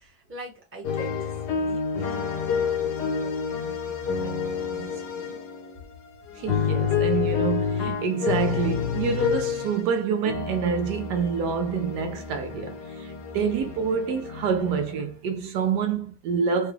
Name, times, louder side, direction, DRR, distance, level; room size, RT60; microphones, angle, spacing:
voice 1, 0.0-4.3 4.7-5.4, right 1 dB, 10° right, 0.9 m, -45 dB
sound 1, 0.8-5.8 6.3-10.0 10.2-15.1, left 6 dB, 70° left, 1.5 m, -29 dB
voice 2, 6.4-16.7, right 6 dB, 75° right, 1.2 m, -27 dB
4.8 x 2.3 x 3.1 m
omnidirectional pair, 1.8 m